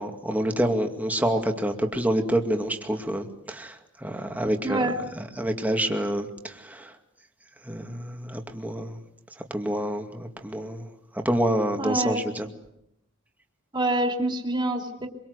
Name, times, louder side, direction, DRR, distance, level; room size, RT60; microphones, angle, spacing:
voice 1, 0.0-3.7 4.0-4.9 5.4-6.3 6.6-6.9 7.7-9.0 9.5-10.8 11.2-12.5, right 1 dB, 10° right, 4 dB, 2.3 m, -27 dB
voice 2, 4.6-5.0 11.8-12.3 13.7-15.1, right 1 dB, 25° right, 2 dB, 3.2 m, -26 dB
25.0 x 24.0 x 8.2 m, 0.79 s
head